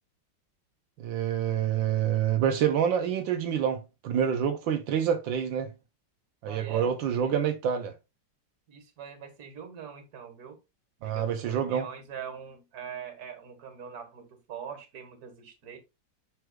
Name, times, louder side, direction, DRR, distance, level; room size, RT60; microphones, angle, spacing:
voice 1, 1.0-5.7 6.4-7.9 11.0-11.9, right 9 dB, 85° right, 1.5 m, -27 dB
voice 2, 6.5-7.3 8.7-10.6 11.0-15.8, right 7 dB, 55° right, 2.0 m, -43 dB
7.8 x 5.9 x 2.3 m
omnidirectional pair, 2.0 m